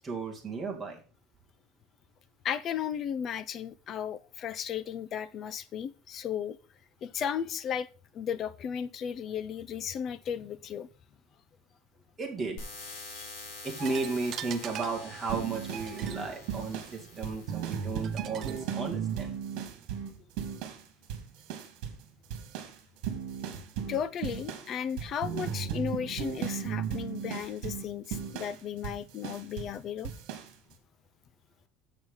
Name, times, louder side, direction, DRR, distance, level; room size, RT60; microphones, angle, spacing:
voice 1, 0.0-1.0 12.2-12.7 13.6-19.4, right 4 dB, 10° right, 2.3 m, -34 dB
voice 2, 2.4-6.6 7.0-7.9 8.1-10.9 13.1-13.3 23.9-30.1, left 8 dB, 35° left, 0.6 m, -35 dB
sound 1, 12.6-18.6, left 3 dB, 60° left, 4.1 m, -47 dB
sound 2, 13.8-19.9, right 10 dB, 35° right, 0.5 m, -45 dB
sound 3, 15.3-20.8 21.1-22.1 22.3-29.8 30.0-30.5, right 8 dB, 60° right, 2.0 m, -36 dB
7.9 x 6.4 x 5.5 m
cardioid pair, 165°, 0 cm